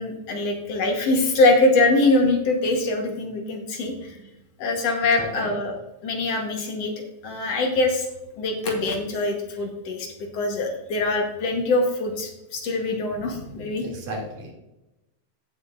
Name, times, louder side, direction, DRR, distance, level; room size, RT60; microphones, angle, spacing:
voice 1, 0.0-4.2 4.6-5.8 6.0-6.9 7.2-8.1 8.4-13.8, left 2 dB, 60° left, 2 dB, 2.2 m, -23 dB
voice 2, 5.2-5.5 13.3-14.5, right 1 dB, 70° right, -3 dB, 4.0 m, -36 dB
16.5 x 6.0 x 2.5 m, 0.94 s
omnidirectional pair, 3.4 m